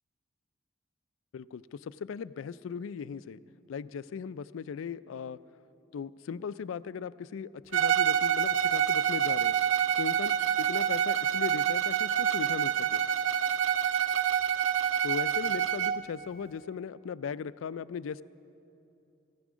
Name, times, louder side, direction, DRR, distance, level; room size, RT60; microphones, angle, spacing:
voice 1, 1.3-3.4 3.7-5.4 5.9-9.6 10.0-13.0 15.0-18.2, left 6 dB, 85° left, 17 dB, 0.4 m, -38 dB
Bowed string instrument, 7.7-16.0, right 9 dB, 70° right, 0.5 m, -27 dB
15.5 x 14.0 x 6.1 m, 2.8 s
head